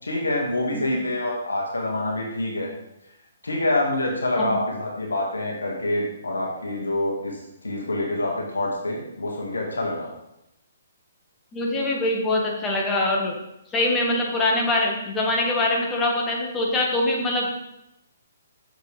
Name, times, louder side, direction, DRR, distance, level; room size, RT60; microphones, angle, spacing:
voice 1, 0.0-2.7 3.4-10.1, left 1 dB, 85° left, -1 dB, 1.9 m, -26 dB
voice 2, 11.5-13.3 13.7-17.6, left 2 dB, 15° left, -1 dB, 1.7 m, -23 dB
7.8 x 6.6 x 3.4 m, 0.86 s
hypercardioid pair, 135°, 0 cm